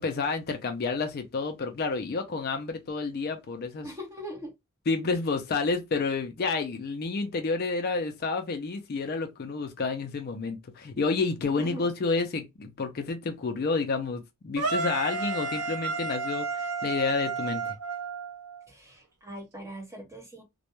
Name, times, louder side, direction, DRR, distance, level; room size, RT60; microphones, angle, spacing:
voice 1, 0.0-3.9 4.9-17.7, left 4 dB, 45° left, 0.4 m, -30 dB
voice 2, 3.8-4.5 11.6-11.9 18.7-20.4, equal, 15° right, 0.7 m, -41 dB
sound 1, 14.6-18.7, right 4 dB, 85° right, 0.5 m, -32 dB
2.2 x 2.1 x 2.9 m
head